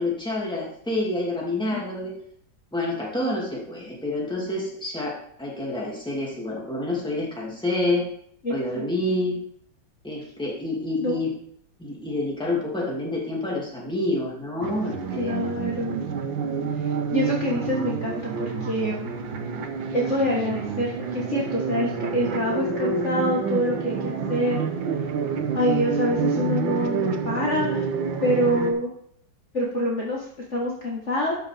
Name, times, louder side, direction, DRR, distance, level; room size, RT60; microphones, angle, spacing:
voice 1, 0.0-2.1 2.7-8.1 8.5-9.4 10.0-11.3 11.8-15.5, left 2 dB, ahead, -4 dB, 2.3 m, -28 dB
voice 2, 8.4-8.8 11.0-11.2 15.2-16.0 16.8-19.1 19.9-24.6 25.5-27.9 28.2-28.9 29.5-31.3, left 1 dB, 40° left, -3 dB, 1.7 m, -26 dB
sound 1, 14.6-28.7, right 5 dB, 75° right, 1.7 m, -28 dB
12.5 x 6.5 x 3.5 m, 0.67 s
omnidirectional pair, 2.2 m